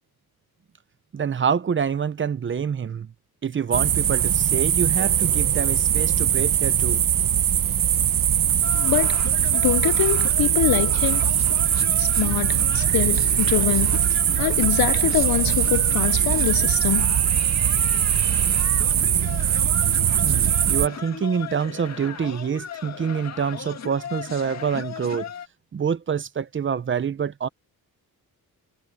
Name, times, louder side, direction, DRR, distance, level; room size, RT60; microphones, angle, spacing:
voice 1, 1.1-3.1 3.4-7.0 20.2-25.3 25.7-27.5, right 7 dB, 30° right, 0.6 m, -26 dB
sound 1, 3.7-20.9, right 10 dB, 60° right, 1.2 m, -21 dB
sound 2, 8.6-25.5, left 8 dB, 45° left, 1.9 m, -37 dB
voice 2, 8.7-11.2 12.0-14.1 14.4-17.2, left 14 dB, 70° left, 0.6 m, -25 dB
wide cardioid pair, 165°, 37 cm